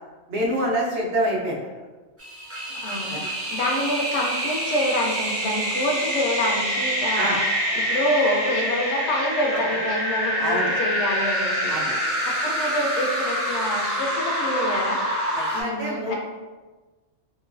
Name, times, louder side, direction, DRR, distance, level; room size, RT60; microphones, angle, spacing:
voice 1, 0.3-1.6 3.1-3.2 7.1-7.4 10.4-10.7 11.7-11.9 15.3-16.1, right 1 dB, 70° right, -3 dB, 0.9 m, -26 dB
sound 1, 2.2-15.6, equal, 20° right, 0.4 m, -26 dB
voice 2, 2.8-7.4 7.7-11.7 12.2-15.0 15.5-16.1, left 1 dB, 75° left, 0 dB, 0.8 m, -26 dB
2.9 x 2.2 x 2.5 m, 1.3 s
omnidirectional pair, 1.2 m